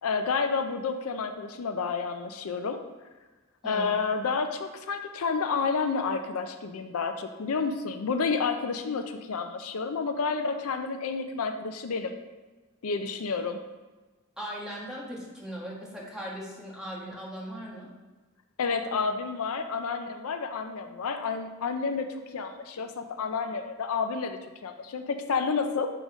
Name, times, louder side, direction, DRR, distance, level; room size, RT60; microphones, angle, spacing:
voice 1, 0.0-2.8 3.6-12.1 12.8-13.6 18.6-22.1 22.3-25.9, left 5 dB, 80° left, 7 dB, 0.5 m, -30 dB
voice 2, 14.4-17.9, equal, 5° right, -5 dB, 1.6 m, -39 dB
6.5 x 3.9 x 4.9 m, 1.2 s
head